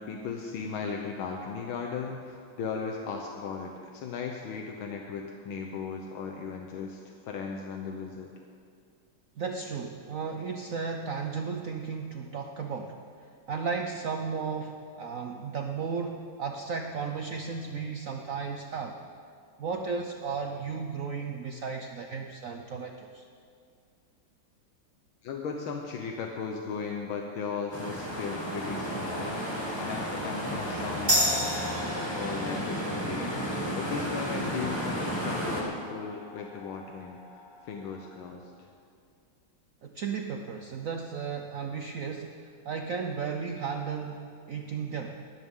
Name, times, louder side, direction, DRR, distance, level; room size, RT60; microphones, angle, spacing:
voice 1, 0.0-8.3 25.2-31.2 32.1-37.2 37.6-38.7, left 5 dB, 75° left, 2 dB, 1.7 m, -37 dB
voice 2, 9.4-19.0 19.6-23.3 39.8-45.2, right 5 dB, 70° right, 4 dB, 0.7 m, -34 dB
sound 1, 27.7-35.6, equal, 10° left, 2.2 m, -33 dB
sound 2, 31.1-38.2, equal, 10° right, 2.0 m, -34 dB
19.5 x 13.5 x 3.7 m, 2.3 s
omnidirectional pair, 2.2 m